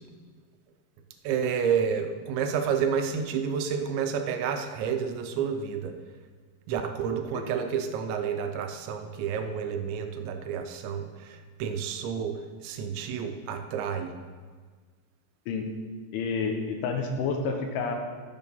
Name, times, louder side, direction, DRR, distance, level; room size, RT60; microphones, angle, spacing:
voice 1, 1.2-5.9 6.7-14.1, right 7 dB, 80° right, 6 dB, 2.9 m, -30 dB
voice 2, 16.1-18.0, left 4 dB, 85° left, 3 dB, 3.6 m, -29 dB
12.5 x 6.8 x 5.3 m, 1.5 s
omnidirectional pair, 5.4 m